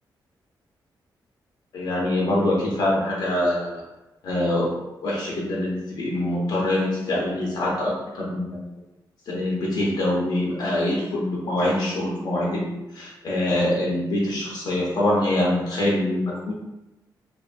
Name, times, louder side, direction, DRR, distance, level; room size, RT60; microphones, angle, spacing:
voice 1, 1.7-3.8 4.2-4.7 5.0-8.6 9.3-16.5, left 1 dB, 60° left, -4 dB, 0.6 m, -24 dB
2.9 x 2.2 x 2.4 m, 1.0 s
wide cardioid pair, 160°, 8 cm